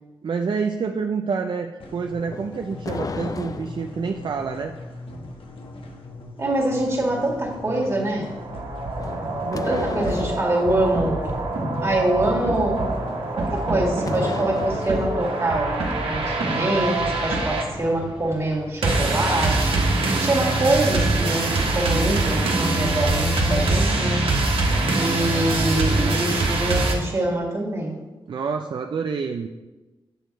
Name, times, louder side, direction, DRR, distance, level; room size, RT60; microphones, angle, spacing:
voice 1, 0.2-4.7 9.4-10.1 28.3-29.5, right 5 dB, 60° right, 4 dB, 0.4 m, -28 dB
sound 1, 1.8-17.8, left 2 dB, 80° left, 1.1 m, -40 dB
sound 2, 2.2-4.0 9.0-10.5 13.4-15.1, left 4 dB, 40° left, 0.4 m, -33 dB
voice 2, 6.4-8.3 9.6-11.2 11.8-12.9 13.3-24.2 24.5-24.7 25.0-28.0, right 1 dB, 30° right, -2 dB, 1.9 m, -25 dB
sound 3, 8.2-26.9, right 2 dB, 90° right, 1.3 m, -24 dB
8.1 x 6.3 x 4.1 m, 1.2 s
wide cardioid pair, 100°, 9 cm